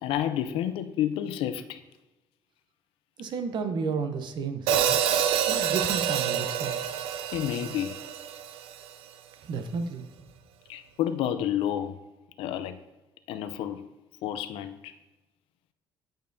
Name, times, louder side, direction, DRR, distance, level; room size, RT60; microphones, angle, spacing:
voice 1, 0.0-1.8 7.3-8.0 10.7-12.0 12.4-12.8 13.3-13.8 14.2-14.9, left 10 dB, 80° left, 0.5 m, -30 dB
voice 2, 3.2-5.0 5.5-6.8 9.4-10.1, right 5 dB, 55° right, 0.7 m, -32 dB
Hi-hat, 4.7-8.8, right 9 dB, 85° right, 0.4 m, -27 dB
8.9 x 5.2 x 2.6 m
cardioid pair, 110°, 9 cm